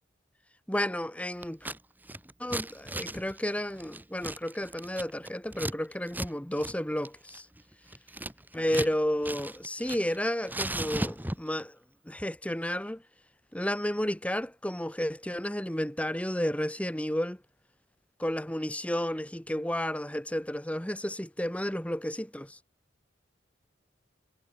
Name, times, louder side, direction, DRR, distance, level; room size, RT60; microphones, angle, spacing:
voice 1, 0.7-1.6 2.4-7.5 8.5-11.8 12.1-13.0 13.5-17.4 18.2-22.6, equal, 5° left, 2.3 m, -32 dB
Scissors, 1.4-1.8 2.0-5.8 6.1-6.3 6.6-6.7 7.1-8.9 9.2-10.2 10.5-11.6, right 1 dB, 10° right, 2.2 m, -36 dB
head